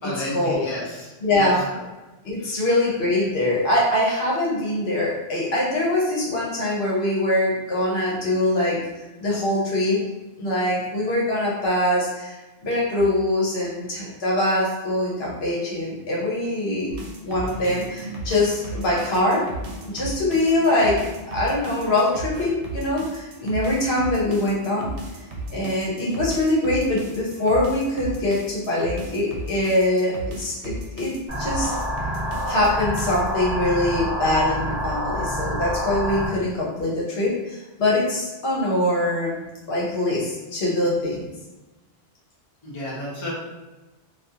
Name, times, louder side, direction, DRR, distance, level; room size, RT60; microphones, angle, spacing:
voice 1, 0.0-1.8 2.4-2.6 42.6-43.3, left 1 dB, 30° left, -6 dB, 0.7 m, -32 dB
voice 2, 1.2-1.6 2.2-10.0 10.4-16.9 17.2-19.4 19.8-21.0 21.3-24.9 25.5-31.7 32.5-39.4 39.7-41.3, left 1 dB, 70° left, -5 dB, 1.0 m, -23 dB
sound 1, 16.9-33.3, right 1 dB, 80° right, 0.9 m, -35 dB
sound 2, 31.3-36.3, equal, 15° right, 0.9 m, -27 dB
2.4 x 2.3 x 2.7 m, 1.1 s
omnidirectional pair, 1.1 m